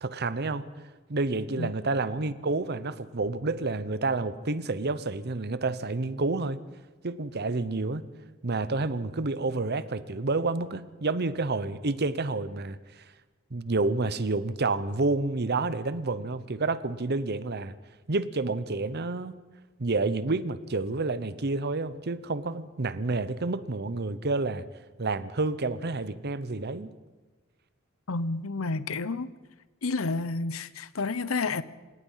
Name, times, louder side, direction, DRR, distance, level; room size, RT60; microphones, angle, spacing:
voice 1, 0.0-0.7 1.1-6.6 7.0-8.0 8.4-13.0 13.5-17.7 18.1-19.3 19.8-24.6 25.0-26.9, right 3 dB, 50° right, 15 dB, 0.9 m, -29 dB
voice 2, 28.1-29.3 29.8-31.6, left 3 dB, 80° left, 16 dB, 0.9 m, -30 dB
28.5 x 17.5 x 5.7 m, 1.2 s
head